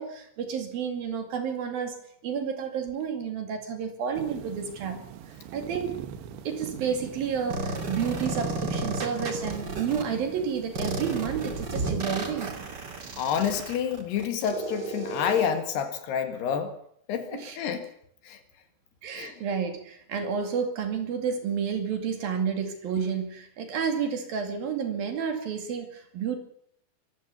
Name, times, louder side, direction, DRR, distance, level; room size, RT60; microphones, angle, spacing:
voice 1, 0.0-2.0 2.2-5.0 5.5-6.0 6.5-12.5 17.3-17.6 19.0-26.4, right 7 dB, 60° right, 6 dB, 3.9 m, -30 dB
sound 1, 4.2-13.7, right 9 dB, 85° right, 3.8 m, -42 dB
sound 2, 7.5-10.0 10.7-15.5, right 2 dB, 30° right, 2.4 m, -33 dB
voice 2, 13.1-16.7 17.1-17.9 18.3-18.4 19.1-19.3, left 8 dB, 70° left, 8 dB, 3.7 m, -28 dB
23.5 x 15.5 x 7.0 m, 0.69 s
omnidirectional pair, 5.1 m